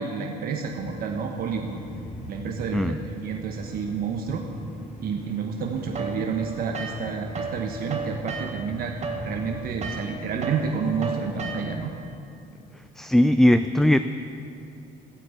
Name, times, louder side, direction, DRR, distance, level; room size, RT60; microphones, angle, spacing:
voice 1, 0.0-1.8 2.3-4.4 5.0-8.9 9.2-11.9, right 6 dB, 60° right, 2 dB, 1.1 m, -30 dB
sound 1, 0.6-11.7, equal, 55° left, 3.8 m, -40 dB
sound 2, 5.9-7.6 7.9-12.0, right 4 dB, 40° right, 1.6 m, -34 dB
voice 2, 13.0-14.0, left 1 dB, ahead, 10 dB, 0.3 m, -19 dB
16.0 x 6.0 x 8.3 m, 2.7 s
cardioid pair, 110°, 17 cm